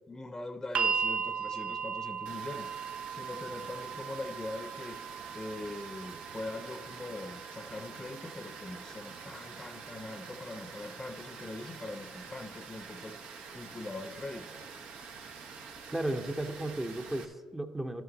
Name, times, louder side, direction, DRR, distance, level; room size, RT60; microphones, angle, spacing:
voice 1, 0.1-14.5, left 2 dB, 25° left, 9 dB, 0.7 m, -42 dB
sound 1, 0.7-12.8 13.9-14.0, right 6 dB, 55° right, 0.5 m, -39 dB
Water, 2.3-17.2, right 5 dB, 75° right, 1.0 m, -47 dB
voice 2, 15.9-18.0, right 1 dB, 15° right, 6 dB, 0.7 m, -34 dB
12.0 x 6.8 x 4.0 m, 1.5 s
supercardioid pair, 55°, 3 cm